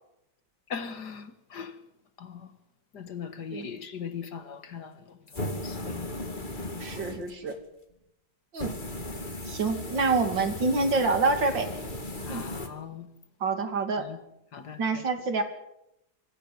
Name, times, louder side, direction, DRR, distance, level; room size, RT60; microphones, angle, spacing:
voice 1, 0.7-1.7 2.2-2.4 2.9-4.9 5.6-6.0 12.2-13.1 14.1-14.2 14.5-14.8, left 6 dB, 65° left, 2.1 m, -39 dB
sound 1, 5.3-7.6 8.6-12.7, left 1 dB, 25° left, 2.4 m, -36 dB
voice 2, 6.8-7.5 8.5-8.7 9.5-11.7 12.3-12.4 13.4-14.0 14.8-15.4, right 3 dB, 90° right, 3.4 m, -26 dB
25.0 x 15.5 x 9.5 m
omnidirectional pair, 1.9 m